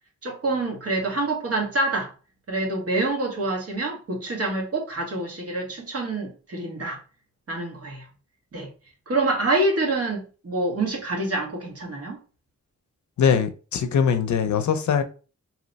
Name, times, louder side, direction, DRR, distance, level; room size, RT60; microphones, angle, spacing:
voice 1, 0.2-2.1 2.5-7.0 7.5-8.1 8.5-8.7 9.1-12.2, right 2 dB, 55° right, 1.0 m, -26 dB
voice 2, 13.2-15.0, left 7 dB, 75° left, 0.5 m, -21 dB
2.9 x 2.0 x 4.0 m
wide cardioid pair, 135°, 29 cm